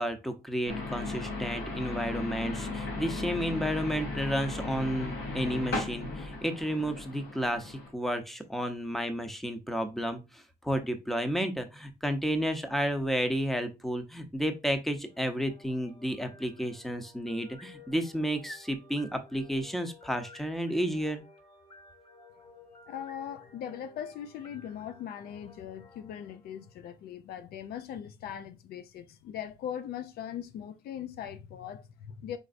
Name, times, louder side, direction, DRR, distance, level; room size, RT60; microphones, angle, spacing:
voice 1, 0.0-21.2, equal, ahead, 0.7 m, -32 dB
sound 1, 0.7-7.9, left 3 dB, 90° left, 2.8 m, -36 dB
sound 2, 15.0-27.1, left 3 dB, 35° left, 1.6 m, -55 dB
voice 2, 22.9-32.4, left 9 dB, 70° left, 0.5 m, -40 dB
5.1 x 3.2 x 2.5 m
cardioid pair, 100°, 16 cm